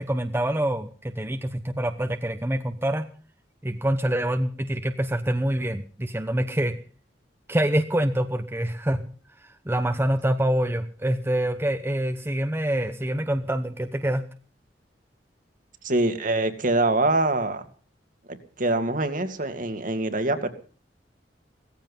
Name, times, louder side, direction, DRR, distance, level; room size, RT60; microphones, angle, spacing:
voice 1, 0.0-3.1 3.6-6.8 7.5-9.1 9.7-14.3, right 1 dB, 15° right, 7 dB, 1.0 m, -26 dB
voice 2, 15.8-17.7 18.3-20.5, right 2 dB, 50° right, 8 dB, 2.3 m, -24 dB
17.5 x 15.0 x 5.5 m, 0.40 s
head